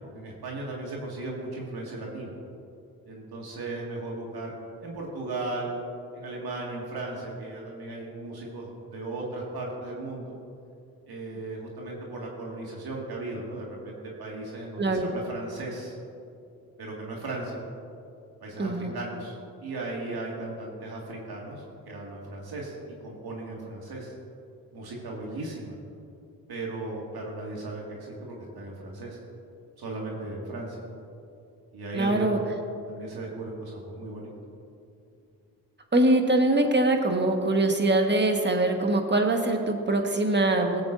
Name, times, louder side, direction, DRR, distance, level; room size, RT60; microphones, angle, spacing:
voice 1, 0.1-2.3 3.1-4.5 4.8-5.8 6.1-10.3 11.1-15.9 16.8-17.6 18.4-24.1 24.7-25.8 26.5-29.2 29.8-30.8 31.7-32.5 32.9-34.3, right 2 dB, 60° right, -2 dB, 2.0 m, -36 dB
voice 2, 14.8-15.1 18.6-18.9 31.9-32.4 35.9-40.8, right 2 dB, 25° right, 4 dB, 1.4 m, -23 dB
16.5 x 7.9 x 2.6 m, 2.6 s
supercardioid pair, 50°, 43 cm